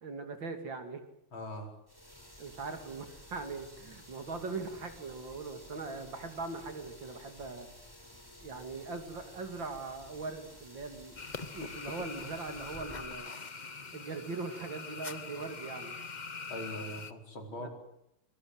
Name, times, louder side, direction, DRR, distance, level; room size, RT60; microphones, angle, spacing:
voice 1, 0.0-1.0 2.4-7.7 8.4-11.2 11.5-13.3 13.9-16.0 17.6-17.7, right 3 dB, 60° right, 7 dB, 3.3 m, -40 dB
voice 2, 1.3-1.7 16.5-17.7, left 1 dB, 70° left, 3 dB, 5.4 m, -41 dB
sound 1, 1.9-13.1, left 1 dB, 10° left, 4.5 m, -53 dB
sound 2, 11.2-17.1, left 4 dB, 30° left, 0.8 m, -43 dB
24.5 x 23.5 x 8.0 m, 0.77 s
omnidirectional pair, 2.3 m